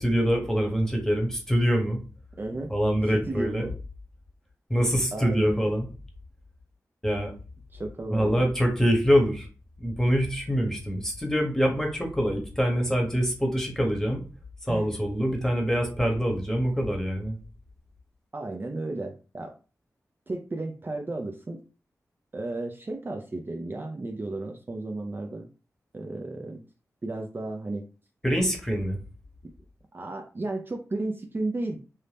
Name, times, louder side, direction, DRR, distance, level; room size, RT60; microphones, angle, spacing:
voice 1, 0.0-2.0 2.7-3.6 4.7-5.9 7.0-7.3 8.1-9.5 9.8-14.2 14.7-17.4 28.2-29.0, equal, 10° left, 1 dB, 1.0 m, -25 dB
voice 2, 2.4-2.7 3.1-3.7 5.1-5.7 7.7-8.5 14.7-14.9 18.3-19.5 20.3-21.6 22.3-25.5 25.9-26.6 27.0-27.9 29.4-29.5 29.9-31.8, right 2 dB, 35° right, 3 dB, 0.4 m, -33 dB
2.7 x 2.1 x 3.3 m, 0.34 s
cardioid pair, 50°, 6 cm